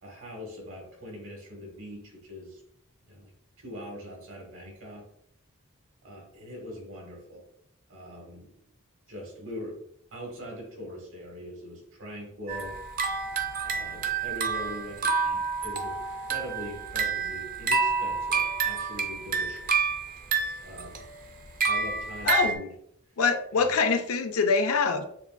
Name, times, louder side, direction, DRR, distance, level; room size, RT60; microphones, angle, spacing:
voice 1, 0.0-2.6 3.0-5.1 6.0-7.5 7.9-8.5 9.1-9.8 10.1-12.8 13.6-19.9 20.6-21.0 21.6-22.7 23.5-23.8, equal, 65° right, -1 dB, 1.6 m, -42 dB
sound 1, 12.5-22.6, right 5 dB, 40° right, 0.5 m, -29 dB
voice 2, 22.3-22.6 23.2-25.0, left 5 dB, 80° left, 7 dB, 0.5 m, -24 dB
6.6 x 2.5 x 2.5 m, 0.71 s
head